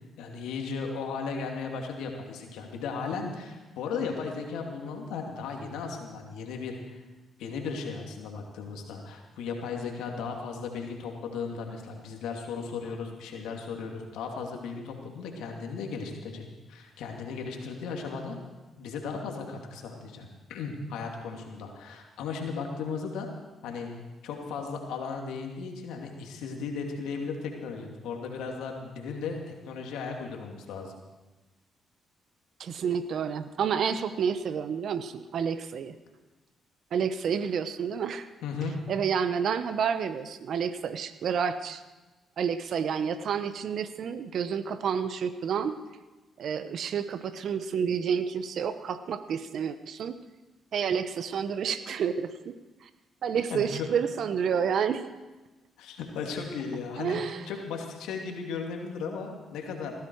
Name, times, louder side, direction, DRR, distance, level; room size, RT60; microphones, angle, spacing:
voice 1, 0.2-7.0 7.4-18.4 18.8-23.3 23.6-23.9 24.2-30.9 38.4-38.8 53.5-53.9 55.8-59.9, left 5 dB, 80° left, 2 dB, 2.5 m, -36 dB
voice 2, 32.6-36.0 36.9-38.3 38.9-41.8 42.4-45.8 46.4-50.1 50.7-52.5 52.8-52.9 53.2-55.0 57.0-57.4, right 7 dB, 65° right, 11 dB, 1.0 m, -29 dB
18.0 x 15.0 x 4.7 m, 1.2 s
supercardioid pair, 55°, 0 cm